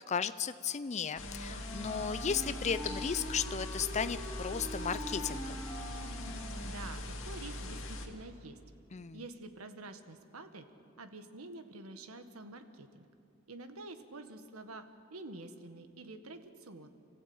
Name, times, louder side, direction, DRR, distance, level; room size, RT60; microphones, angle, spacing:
voice 1, 0.0-5.6 8.9-9.2, left 6 dB, 35° left, 12 dB, 0.5 m, -35 dB
Wind instrument woodwind instrument, 1.1-7.0, equal, 10° left, 6.8 m, -44 dB
sound 1, 1.2-8.1, left 1 dB, 65° left, 2.3 m, -41 dB
voice 2, 6.6-8.6 9.1-10.7 11.0-13.1 13.5-16.9, right 2 dB, 90° right, 8 dB, 1.6 m, -48 dB
29.0 x 15.0 x 8.7 m, 2.6 s
head